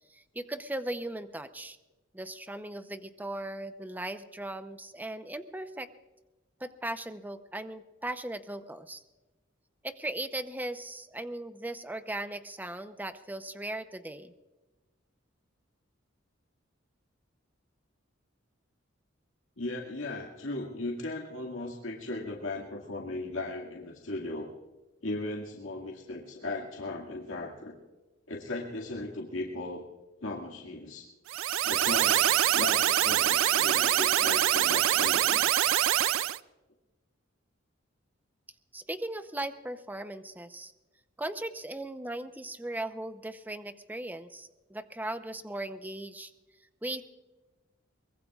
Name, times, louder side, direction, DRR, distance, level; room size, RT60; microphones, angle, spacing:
voice 1, 0.1-1.8 2.1-5.9 6.6-9.0 9.8-14.3 38.7-40.7 41.2-46.3 46.8-47.0, right 1 dB, 10° right, 10 dB, 0.7 m, -38 dB
voice 2, 19.6-24.5 25.0-27.7 28.3-29.8 30.2-31.1 31.6-35.4, left 2 dB, 80° left, -1 dB, 2.1 m, -37 dB
sound 1, 31.3-36.4, right 11 dB, 80° right, 0.4 m, -25 dB
23.5 x 21.0 x 2.4 m, 1.1 s
head